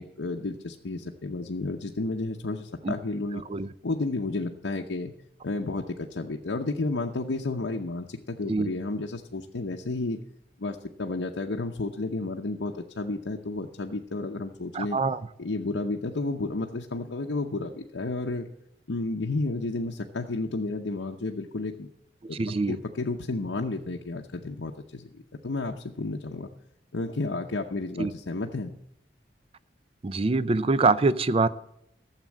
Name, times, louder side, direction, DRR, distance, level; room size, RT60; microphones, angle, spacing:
voice 1, 0.0-3.4 3.8-5.1 5.4-10.2 10.6-15.0 15.4-18.5 18.9-21.9 22.3-22.4 22.7-26.5 26.9-28.7, left 2 dB, 90° left, 2 dB, 0.8 m, -32 dB
voice 2, 3.3-3.7 8.5-8.7 14.7-15.2 22.3-22.8 28.0-28.1 30.0-31.5, right 3 dB, 30° right, 16 dB, 0.4 m, -24 dB
13.0 x 7.5 x 7.4 m, 0.79 s
head